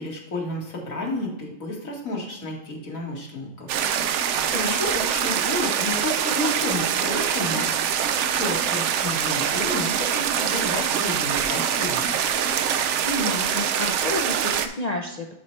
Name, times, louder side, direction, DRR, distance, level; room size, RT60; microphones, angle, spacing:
voice 1, 0.0-3.7 4.5-7.7 8.4-12.0, left 1 dB, 80° left, -2 dB, 2.2 m, -31 dB
sound 1, 3.7-14.7, right 8 dB, 65° right, 0.8 m, -24 dB
voice 2, 13.0-15.3, left 2 dB, 45° left, 1 dB, 0.5 m, -30 dB
11.0 x 4.3 x 3.2 m, 0.89 s
omnidirectional pair, 1.4 m